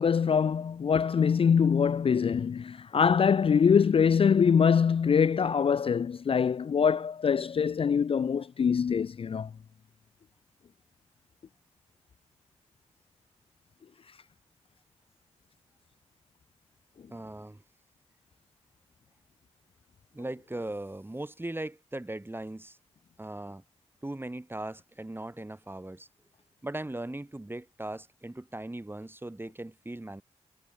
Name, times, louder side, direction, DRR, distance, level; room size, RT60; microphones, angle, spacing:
voice 1, 0.0-9.5, left 6 dB, 50° left, 0.4 m, -24 dB
voice 2, 17.1-17.6 20.1-22.8 23.2-23.6 24.0-26.1 26.6-30.2, right 1 dB, 20° right, 2.8 m, -39 dB
cardioid pair, 50°, 12 cm